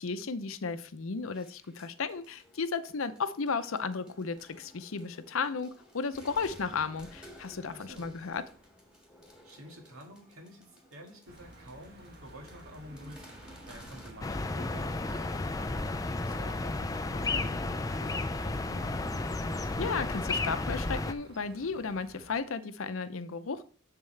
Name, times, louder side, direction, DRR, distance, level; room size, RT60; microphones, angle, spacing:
voice 1, 0.0-8.4 19.8-23.6, left 5 dB, 75° left, 11 dB, 0.6 m, -34 dB
sound 1, 1.3-14.1, equal, 5° right, 1.7 m, -55 dB
voice 2, 7.7-8.1 9.4-13.3 13.7-19.2, equal, 90° right, 2 dB, 1.9 m, -50 dB
sound 2, 11.3-22.4, right 1 dB, 50° right, 1.1 m, -53 dB
sound 3, 14.2-21.1, left 2 dB, 15° left, 0.3 m, -33 dB
7.2 x 6.7 x 3.3 m, 0.41 s
head